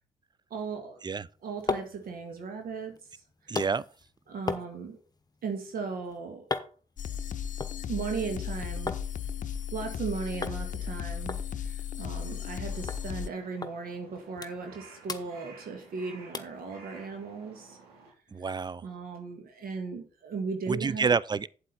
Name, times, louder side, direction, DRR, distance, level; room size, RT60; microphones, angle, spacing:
voice 1, 0.5-1.0 1.4-3.0 3.4-3.6 4.3-5.0 5.4-6.5 7.9-9.0 9.7-17.8 18.8-21.1, right 5 dB, 65° right, 1.8 m, -37 dB
sound 1, 1.2-9.1 9.4-10.0 10.4-10.6 10.9-11.0 11.3-12.6 12.9-13.0 13.6-13.8 14.1-14.8 15.0-16.0 16.3-16.6 17.1-17.2, left 4 dB, 25° left, 1.1 m, -38 dB
voice 2, 3.5-3.8 18.3-18.8 20.7-21.5, right 5 dB, 25° right, 0.5 m, -28 dB
sound 2, 7.0-13.3, left 9 dB, 50° left, 0.7 m, -35 dB
Crow, 12.6-18.1, right 4 dB, 80° right, 2.4 m, -53 dB
8.9 x 7.7 x 4.1 m
hypercardioid pair, 45°, 16 cm